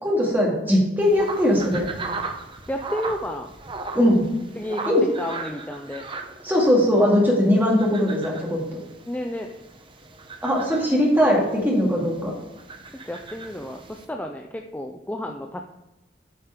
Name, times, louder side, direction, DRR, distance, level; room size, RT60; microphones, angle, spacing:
voice 1, 0.0-1.9 3.9-4.2 4.9-5.0 6.4-8.6 10.4-12.3, left 1 dB, 10° right, -3 dB, 2.1 m, -20 dB
sound 1, 1.0-14.1, right 3 dB, 30° right, 0.8 m, -38 dB
voice 2, 2.7-3.5 4.6-6.1 9.1-9.6 13.1-15.6, left 1 dB, 10° left, 3 dB, 0.4 m, -32 dB
8.8 x 5.2 x 5.0 m, 0.96 s
head